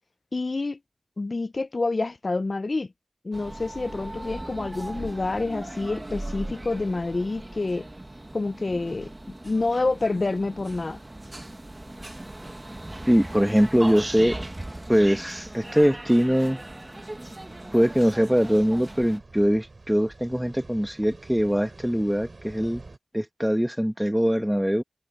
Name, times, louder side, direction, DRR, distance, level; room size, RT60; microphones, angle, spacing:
voice 1, 0.3-0.8 1.2-2.9 3.2-7.9 8.3-9.1 9.4-11.0, left 3 dB, 65° left, 0.5 m, -28 dB
sound 1, 3.3-19.2, right 1 dB, 35° right, 1.4 m, -38 dB
voice 2, 13.1-14.4 14.9-16.6 17.7-22.8 23.1-24.8, equal, 5° right, 1.5 m, -22 dB
sound 2, 16.4-23.0, right 3 dB, 70° right, 5.6 m, -48 dB
cardioid pair, 40°, 0 cm